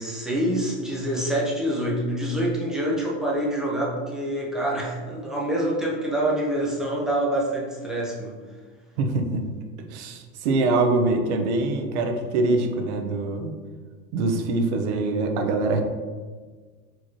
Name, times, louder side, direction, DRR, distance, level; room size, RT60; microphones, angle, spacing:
voice 1, 0.0-8.4, right 1 dB, ahead, -5 dB, 0.7 m, -26 dB
voice 2, 9.0-9.5 9.9-13.5 14.1-15.8, right 3 dB, 85° right, 5 dB, 0.7 m, -24 dB
4.6 x 2.9 x 3.0 m, 1.5 s
supercardioid pair, 135°, 33 cm